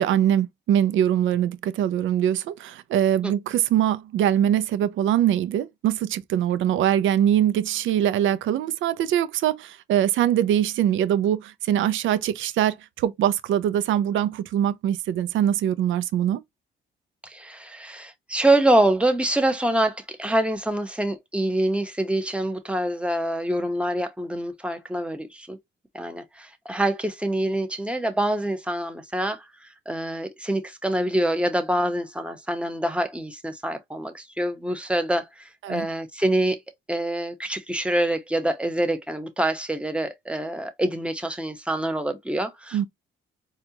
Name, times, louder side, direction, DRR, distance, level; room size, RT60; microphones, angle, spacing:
voice 1, 0.0-16.4 35.6-35.9 42.7-42.8, right 10 dB, 75° right, 0.5 m, -23 dB
voice 2, 17.2-25.6 25.9-36.6 36.9-42.9, right 1 dB, 5° right, 0.9 m, -25 dB
4.3 x 2.4 x 2.8 m
cardioid pair, 90°, 20 cm